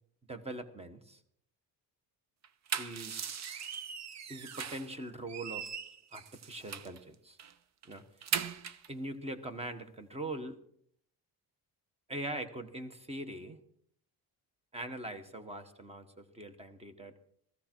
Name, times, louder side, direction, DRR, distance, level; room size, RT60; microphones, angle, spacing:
voice 1, 0.3-1.2 2.8-3.4 4.3-5.7 6.1-7.4 7.8-8.0 8.9-10.6 12.1-13.6 14.7-17.2, right 1 dB, 15° right, 8 dB, 1.2 m, -42 dB
sound 1, 2.4-4.9 5.3-7.0 7.4-7.5 7.8-8.9, right 7 dB, 40° right, 0.8 m, -39 dB
17.0 x 15.0 x 4.5 m, 0.65 s
cardioid pair, 170°, 41 cm